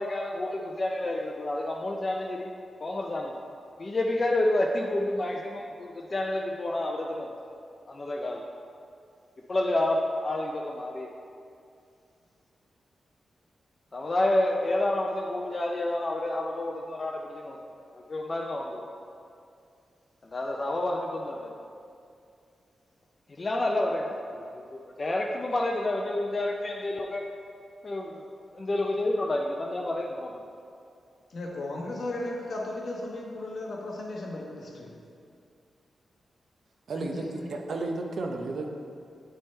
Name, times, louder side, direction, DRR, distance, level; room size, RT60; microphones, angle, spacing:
voice 1, 0.0-2.5 2.8-3.3 3.8-7.3 7.9-8.4 9.5-11.1 13.9-17.6 18.1-18.8 20.3-21.5 23.3-24.4 25.0-27.2 27.8-28.3 28.5-30.3, left 1 dB, 30° left, -1 dB, 0.4 m, -29 dB
voice 2, 31.3-35.0 36.9-37.5, left 2 dB, 55° left, -2 dB, 1.0 m, -36 dB
voice 3, 36.9-38.7, right 2 dB, 60° right, 2 dB, 0.6 m, -33 dB
9.1 x 3.3 x 4.3 m, 2.4 s
wide cardioid pair, 150°, 0 cm